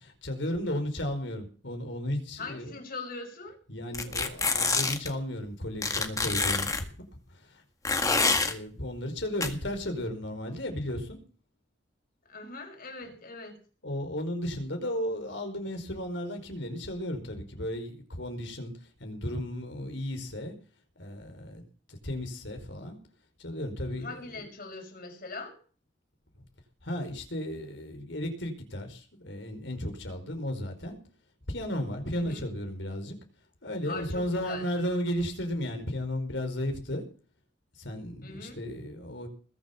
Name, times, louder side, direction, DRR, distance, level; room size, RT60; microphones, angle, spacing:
voice 1, 0.0-2.7 3.7-6.9 8.0-11.2 13.8-18.7 19.0-20.5 21.0-21.6 21.9-23.0 23.4-24.2 26.8-31.0 31.5-33.2 33.6-37.0 37.8-39.3, left 1 dB, 75° left, 5 dB, 4.7 m, -34 dB
voice 2, 2.4-3.6 12.3-13.6 23.9-25.6 32.1-32.5 33.8-34.7 38.2-38.6, left 3 dB, 50° left, 5 dB, 5.6 m, -41 dB
sound 1, 3.9-5.1 5.8-6.8 7.8-8.5 9.4-9.5, left 4 dB, 20° left, 1.9 m, -26 dB
21.0 x 7.6 x 7.1 m, 0.40 s
head